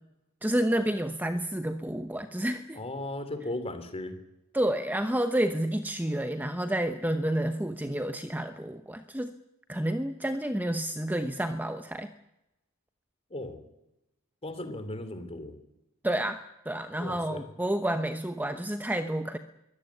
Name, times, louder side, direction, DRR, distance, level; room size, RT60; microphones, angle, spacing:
voice 1, 0.4-2.8 4.5-9.3 9.7-12.1 16.0-16.4 16.7-19.4, right 1 dB, 10° right, 9 dB, 0.9 m, -29 dB
voice 2, 2.7-4.1 13.3-13.6 14.4-15.6 17.0-17.5, left 1 dB, 25° left, 10 dB, 3.3 m, -36 dB
23.0 x 16.5 x 9.7 m, 0.90 s
head